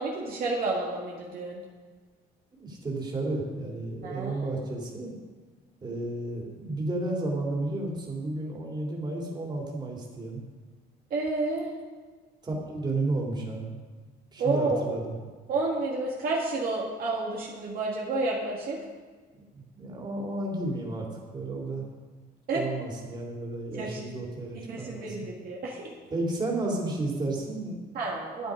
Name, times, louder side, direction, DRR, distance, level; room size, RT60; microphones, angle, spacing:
voice 1, 0.0-1.6 4.0-4.5 11.1-11.7 14.4-15.0 15.5-18.8 22.5-22.6 23.7-24.0 24.5-25.9 27.9-28.5, right 3 dB, 60° right, -3 dB, 2.0 m, -30 dB
voice 2, 2.5-5.1 5.8-10.4 12.4-13.7 14.3-15.1 19.3-21.1 21.3-21.8 22.5-25.2 26.1-27.8, right 2 dB, 25° right, -2 dB, 3.1 m, -32 dB
12.5 x 8.6 x 5.1 m, 1.4 s
cardioid pair, 110°, 17 cm